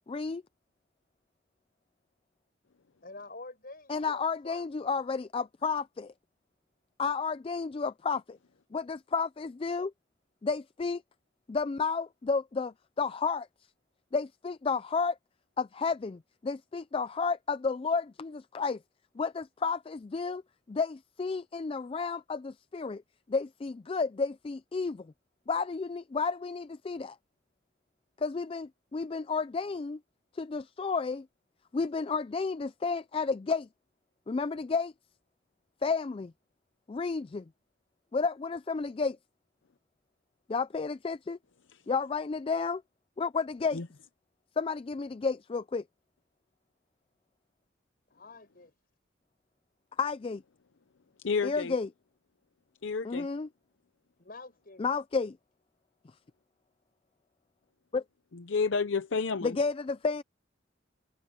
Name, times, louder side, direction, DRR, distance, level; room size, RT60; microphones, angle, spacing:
voice 1, 0.1-0.4 3.9-6.1 7.0-8.4 8.7-9.9 10.4-11.0 11.5-13.5 14.1-15.2 15.6-18.8 19.2-20.4 20.7-23.0 23.3-25.1 25.5-27.2 28.2-30.0 30.3-31.3 31.7-33.7 34.3-34.9 35.8-36.3 36.9-37.4 38.1-39.2 40.5-41.4 41.9-42.8 43.2-43.8 44.6-45.8 50.0-50.4 51.4-51.9 53.0-53.5 54.8-55.4 57.9-58.0 59.4-60.2, left 4 dB, 30° left, 0.3 m, -31 dB
voice 2, 3.0-4.7 48.1-48.7 54.2-54.9, left 3 dB, 50° left, 5.5 m, -47 dB
voice 3, 51.2-51.7 52.8-53.3 58.3-59.6, left 5 dB, 75° left, 0.7 m, -30 dB
head